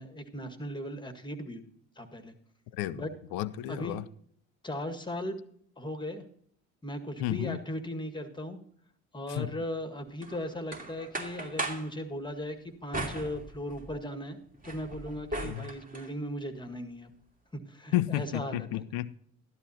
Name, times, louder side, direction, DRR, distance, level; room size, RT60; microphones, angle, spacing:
voice 1, 0.0-1.6 2.0-2.3 2.9-3.1 3.7-4.0 4.6-5.4 5.8-6.2 6.8-8.6 9.1-14.4 14.6-17.1 17.7-18.7, left 1 dB, 10° left, 1.7 m, -37 dB
voice 2, 2.7-4.0 7.2-7.6 9.3-9.5 15.4-15.6 17.9-19.2, left 14 dB, 60° left, 0.6 m, -32 dB
sound 1, 10.2-11.9 12.9-14.0 14.4-16.1, right 2 dB, 20° right, 2.6 m, -38 dB
13.0 x 12.0 x 2.8 m
figure-of-eight pair, 50°, 40 cm